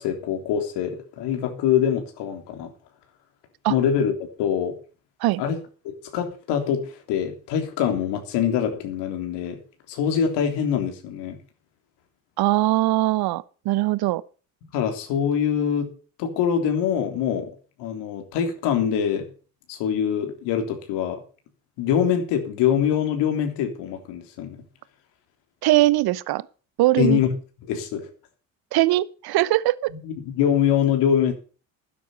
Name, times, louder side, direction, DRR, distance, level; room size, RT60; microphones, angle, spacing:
voice 1, 0.0-2.7 3.7-4.1 4.4-4.7 5.4-5.6 6.1-9.6 9.9-11.4 14.7-15.9 16.2-17.5 17.8-19.3 19.7-21.2 21.8-24.6 27.0-27.3 27.7-28.1 30.0-31.3, left 8 dB, 70° left, 3.4 m, -24 dB
voice 2, 12.4-14.2 25.6-26.5 26.8-27.2 28.7-29.9, right 17 dB, 60° right, 1.0 m, -21 dB
12.5 x 10.0 x 6.7 m
hypercardioid pair, 55°, 43 cm